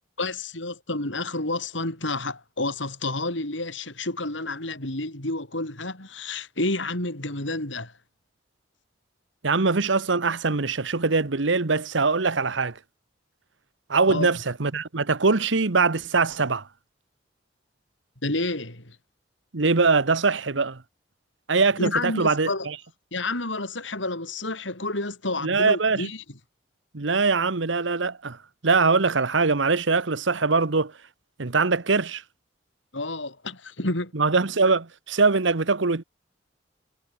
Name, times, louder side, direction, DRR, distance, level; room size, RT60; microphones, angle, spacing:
voice 1, 0.2-7.9 14.1-14.3 18.2-19.0 21.8-22.7 23.1-26.2 32.9-34.1, left 2 dB, 85° left, 6.2 m, -30 dB
voice 2, 9.4-12.8 13.9-16.7 19.5-20.8 21.5-22.8 25.4-26.1 26.9-28.4 28.6-30.9 31.4-32.2 34.1-36.0, right 4 dB, 90° right, 1.2 m, -22 dB
head